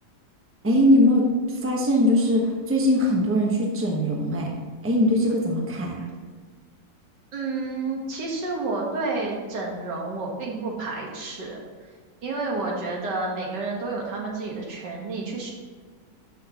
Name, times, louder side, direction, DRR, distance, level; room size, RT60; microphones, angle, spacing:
voice 1, 0.6-4.6 4.8-6.1, left 1 dB, 10° right, -1 dB, 1.0 m, -21 dB
voice 2, 7.3-11.6 12.2-15.5, right 3 dB, 70° right, -1 dB, 2.1 m, -30 dB
12.0 x 6.6 x 3.0 m, 1.5 s
omnidirectional pair, 1.9 m